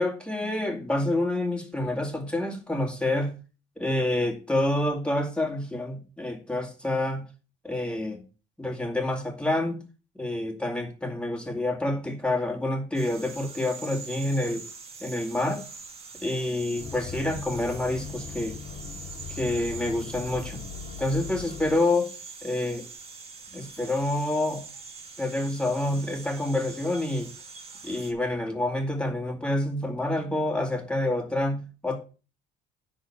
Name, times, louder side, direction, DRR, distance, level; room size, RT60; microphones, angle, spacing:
voice 1, 0.0-3.3 3.8-7.2 7.6-8.2 8.6-9.8 10.2-14.6 15.0-15.6 16.2-18.6 19.3-20.7 21.0-22.1 22.4-22.8 23.5-24.6 25.2-27.3 27.8-32.0, left 1 dB, 5° left, 2.2 m, -28 dB
sound 1, 12.9-28.1, right 4 dB, 35° right, 2.3 m, -44 dB
sound 2, 16.8-21.8, left 6 dB, 60° left, 1.8 m, -40 dB
10.0 x 4.0 x 7.2 m
cardioid pair, 110°, 17 cm